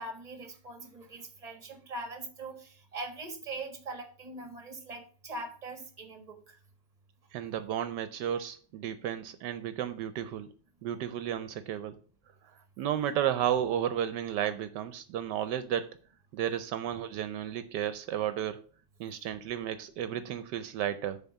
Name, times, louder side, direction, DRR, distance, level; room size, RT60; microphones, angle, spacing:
voice 1, 0.0-6.6, right 2 dB, 25° right, 1.4 m, -42 dB
voice 2, 7.3-10.5 10.8-12.0 12.8-15.9 16.3-18.6 19.0-21.2, right 10 dB, 75° right, 1.2 m, -33 dB
7.1 x 4.2 x 6.7 m
omnidirectional pair, 1.9 m